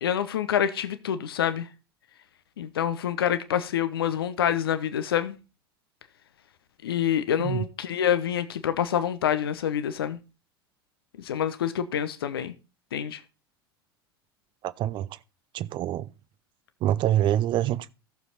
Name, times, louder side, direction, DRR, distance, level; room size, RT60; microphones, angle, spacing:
voice 1, 0.0-1.7 2.6-5.4 6.8-10.2 11.2-12.5 12.9-13.2, left 9 dB, 70° left, 0.8 m, -27 dB
voice 2, 14.6-15.1 15.5-16.1 16.8-17.9, right 12 dB, 40° right, 0.6 m, -25 dB
14.0 x 7.1 x 4.0 m
figure-of-eight pair, 75°, 13 cm